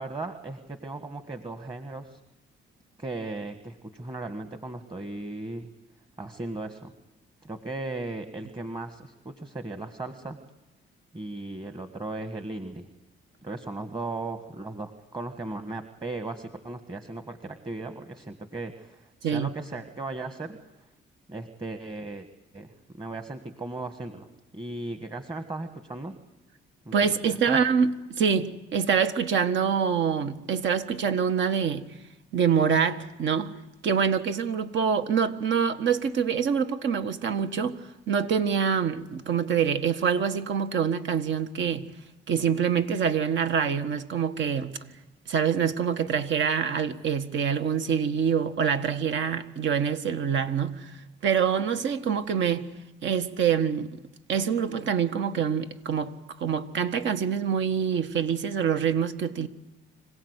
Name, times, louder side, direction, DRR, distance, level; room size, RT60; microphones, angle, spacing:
voice 1, 0.0-2.2 3.0-5.7 6.2-6.9 7.4-10.4 11.1-12.9 13.4-20.6 21.3-22.3 22.5-22.7 22.9-24.3 24.5-26.1 26.8-26.9 27.3-27.6, right 2 dB, 20° right, 1.6 m, -37 dB
voice 2, 26.9-31.8 32.3-33.5 33.8-41.9 42.3-44.7 45.3-52.7 53.0-54.0 54.3-59.5, right 7 dB, 70° right, 1.6 m, -25 dB
26.0 x 17.0 x 8.2 m
cardioid pair, 90°, 20 cm